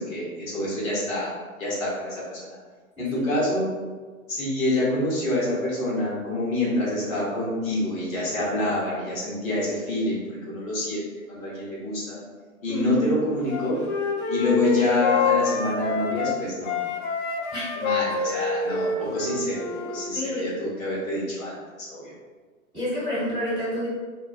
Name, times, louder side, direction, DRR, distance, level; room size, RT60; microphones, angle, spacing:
voice 1, 0.0-1.3 1.6-2.6 3.0-3.7 4.3-10.2 10.5-12.2 12.6-13.8 14.3-16.8 17.8-21.5 21.8-22.2, left 1 dB, 70° left, -7 dB, 1.1 m, -27 dB
voice 2, 3.0-3.3 12.7-13.1 17.5-17.7 20.1-20.5 22.7-23.9, left 1 dB, 10° right, -11 dB, 1.3 m, -28 dB
Wind instrument woodwind instrument, 13.5-16.4 16.6-20.1, left 4 dB, 55° left, 0.5 m, -27 dB
2.4 x 2.2 x 2.3 m, 1.4 s
figure-of-eight pair, 110°, 42 cm